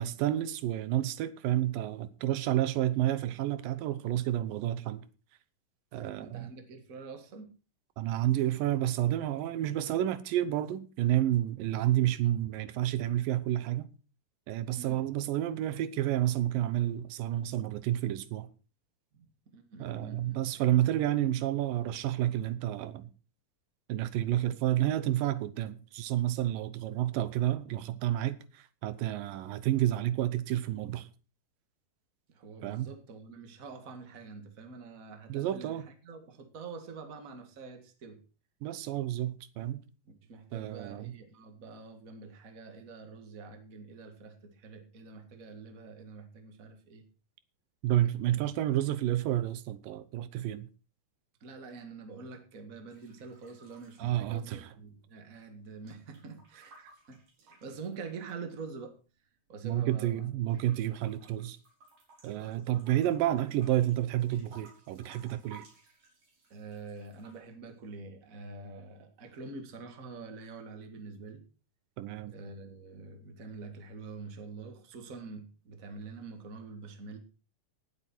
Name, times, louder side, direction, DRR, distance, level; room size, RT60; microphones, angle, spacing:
voice 1, 0.0-5.0 5.9-6.5 8.0-13.9 14.5-18.5 19.8-23.1 23.9-31.1 32.6-32.9 35.3-35.8 38.6-39.8 40.5-41.2 47.8-50.7 54.0-54.7 59.6-61.6 62.2-65.6 72.0-72.3, right 13 dB, 85° right, 2.6 m, -30 dB
voice 2, 6.2-7.5 14.8-15.0 19.1-20.4 32.3-38.2 40.1-47.1 48.3-48.5 51.4-59.0 59.5-60.3 62.2-62.5 66.5-71.4 72.3-77.2, right 4 dB, 30° right, 1.8 m, -46 dB
sound 1, 52.9-54.9 55.2-58.5 59.2-60.2 60.5-67.4, right 3 dB, 60° right, 5.9 m, -59 dB
18.5 x 8.0 x 4.5 m
omnidirectional pair, 3.9 m